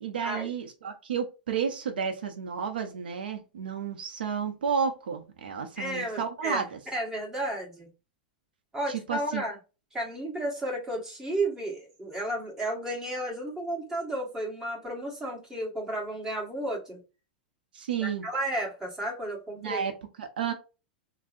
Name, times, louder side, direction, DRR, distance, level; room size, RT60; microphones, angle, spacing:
voice 1, 0.0-6.8 8.9-9.4 17.7-18.3 19.6-19.9 20.2-20.5, right 7 dB, 85° right, 0.6 m, -31 dB
voice 2, 5.8-6.6 6.9-7.9 8.7-9.6 9.9-17.0 18.0-19.8, right 1 dB, 15° right, 1.4 m, -33 dB
3.6 x 2.0 x 2.5 m
hypercardioid pair, 115°, 5 cm